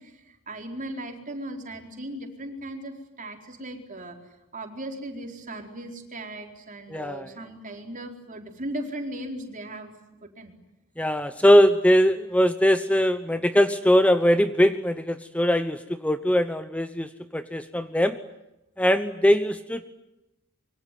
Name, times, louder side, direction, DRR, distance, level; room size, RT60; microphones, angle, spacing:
voice 1, 0.0-9.9 10.2-10.5, right 1 dB, 40° right, 4 dB, 4.5 m, -37 dB
voice 2, 6.9-7.3 11.0-18.2 18.8-19.9, equal, 5° left, 10 dB, 0.9 m, -21 dB
25.5 x 24.0 x 9.4 m, 0.92 s
head